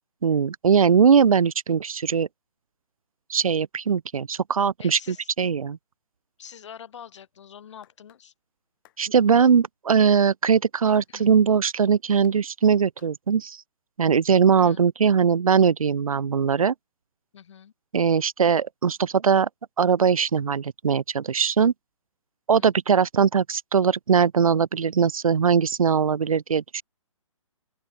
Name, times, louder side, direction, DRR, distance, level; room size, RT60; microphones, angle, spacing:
voice 1, 0.2-2.3 3.3-5.0 5.4-5.8 9.0-13.6 14.0-16.7 17.9-19.5 19.8-21.7 22.5-26.8, right 6 dB, 90° right, 0.5 m, -20 dB
voice 2, 4.8-5.3 6.4-8.3 11.1-11.3 14.6-14.8 17.3-17.7 22.5-22.8, left 8 dB, 60° left, 2.5 m, -45 dB
sound 1, 7.8-8.2 8.8-9.0 9.9-10.3 10.9-11.1 11.9-12.4 13.0-13.2, left 17 dB, 40° left, 4.4 m, -59 dB
open air
figure-of-eight pair, 135°, 17 cm